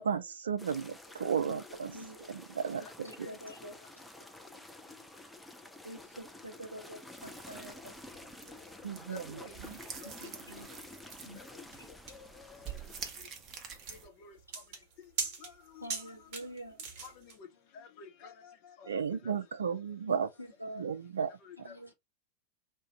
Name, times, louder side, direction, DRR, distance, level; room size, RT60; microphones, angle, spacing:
voice 1, 0.0-1.9 2.3-2.8 8.8-9.8 18.9-20.3 20.8-21.3, right 7 dB, 70° right, 0.4 m, -34 dB
sound 1, 0.6-13.1, left 2 dB, 5° left, 0.4 m, -50 dB
voice 2, 0.8-1.2 2.8-2.9 3.2-3.3 9.1-9.6 10.0-10.3 11.4-11.6 12.1-12.7 13.9-14.4 15.4-15.9 17.0-17.5 17.7-19.3 21.4-21.7, left 6 dB, 45° left, 0.8 m, -52 dB
voice 3, 1.4-2.4 2.7-4.0 5.8-8.4 10.0-10.7 11.2-11.5 11.8-11.9 15.8-16.9 20.1-21.0 21.6-21.9, right 1 dB, 90° left, 0.9 m, -47 dB
sound 2, 7.2-14.1, right 6 dB, 30° right, 0.7 m, -48 dB
sound 3, 11.1-17.4, right 5 dB, 45° right, 1.1 m, -41 dB
2.4 x 2.2 x 3.9 m
figure-of-eight pair, 90°, 0 cm